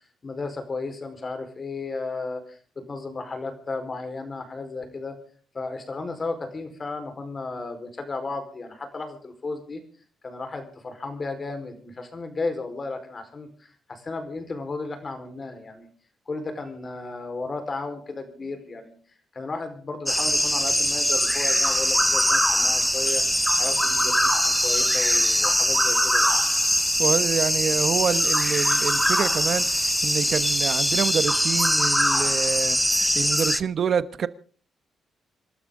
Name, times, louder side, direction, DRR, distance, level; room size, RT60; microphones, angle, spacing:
voice 1, 0.2-5.1 5.5-9.8 10.2-15.9 16.3-18.9 19.3-23.2 23.6-26.3, left 3 dB, 35° left, 4.6 m, -34 dB
sound 1, 20.1-33.6, equal, ahead, 0.7 m, -22 dB
voice 2, 27.0-34.3, right 7 dB, 55° right, 1.1 m, -27 dB
26.5 x 12.5 x 3.8 m
cardioid pair, 95°, 0 cm